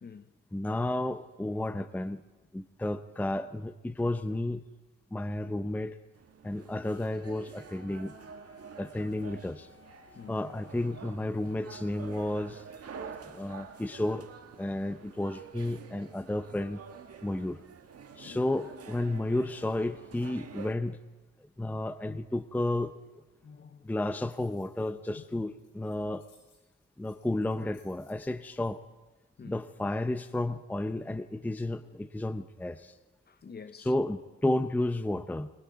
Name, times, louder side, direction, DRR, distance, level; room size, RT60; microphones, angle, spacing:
voice 1, 0.0-0.3 10.1-10.4 18.2-18.4 22.0-22.2 23.4-23.9 25.1-25.5 29.4-29.6 33.3-33.9, left 5 dB, 35° left, 0.9 m, -48 dB
voice 2, 0.5-2.2 2.5-4.6 5.1-6.0 6.4-8.1 8.8-9.7 10.3-12.6 13.3-14.3 14.6-16.8 17.2-17.6 18.2-21.0 21.6-22.9 23.8-26.2 27.0-28.8 29.4-33.0 33.8-35.5, left 1 dB, 5° left, 0.6 m, -32 dB
sound 1, 6.1-20.8, right 6 dB, 50° right, 1.8 m, -48 dB
Wind instrument woodwind instrument, 6.8-11.0, left 5 dB, 60° left, 3.0 m, -59 dB
sound 2, 23.9-28.7, left 4 dB, 80° left, 7.7 m, -67 dB
28.5 x 20.0 x 4.7 m
cardioid pair, 90°, 30 cm